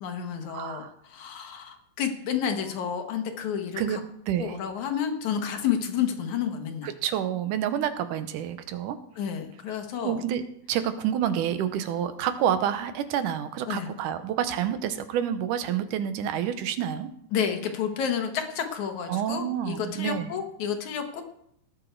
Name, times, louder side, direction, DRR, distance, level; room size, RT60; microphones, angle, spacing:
voice 1, 0.0-4.0 4.4-6.9 9.2-10.2 13.7-13.9 17.3-21.2, left 8 dB, 70° left, 5 dB, 2.6 m, -30 dB
voice 2, 0.5-0.9 3.8-4.0 4.3-4.6 6.8-9.0 10.0-10.4 10.7-17.1 19.1-20.3, right 9 dB, 90° right, 10 dB, 2.4 m, -28 dB
19.0 x 8.0 x 4.6 m, 0.72 s
omnidirectional pair, 3.6 m